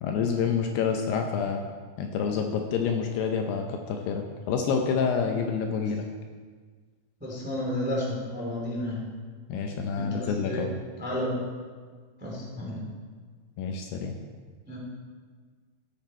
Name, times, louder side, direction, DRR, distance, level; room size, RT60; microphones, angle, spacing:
voice 1, 0.0-1.6 2.0-6.1 9.5-10.7 13.6-14.1, left 6 dB, 75° left, 3 dB, 2.6 m, -28 dB
voice 2, 7.2-9.0 10.0-10.6 11.0-11.4 12.2-12.9 14.7-14.8, left 1 dB, 5° right, -3 dB, 1.4 m, -31 dB
16.0 x 8.0 x 4.4 m, 1.6 s
omnidirectional pair, 5.1 m